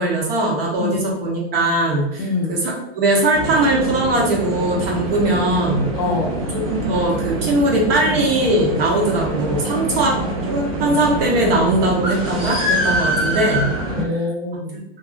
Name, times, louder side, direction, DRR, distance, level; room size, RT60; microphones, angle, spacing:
voice 1, 0.0-2.2 2.5-5.9 6.5-10.2 10.5-13.7, right 1 dB, 65° right, -2 dB, 0.9 m, -20 dB
voice 2, 2.2-2.6 6.0-6.3 13.9-14.8, left 3 dB, 45° left, 3 dB, 0.5 m, -25 dB
sound 1, 3.3-14.0, right 1 dB, 35° right, 0.5 m, -24 dB
2.6 x 2.4 x 2.4 m, 0.82 s
supercardioid pair, 165°, 32 cm